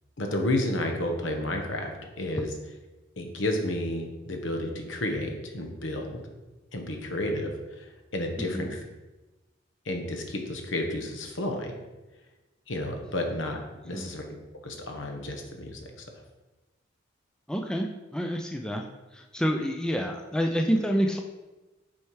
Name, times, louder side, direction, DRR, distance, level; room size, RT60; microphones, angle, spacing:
voice 1, 0.2-1.9 2.2-2.5 3.2-6.2 6.7-8.8 9.9-11.7 12.7-13.6 13.8-14.4 14.6-15.8, left 1 dB, 75° left, 3 dB, 1.1 m, -31 dB
voice 2, 8.4-8.7 13.9-14.1 17.5-17.9 18.1-18.9 19.1-21.2, equal, 5° left, 3 dB, 0.3 m, -28 dB
6.3 x 4.5 x 4.7 m, 1.1 s
head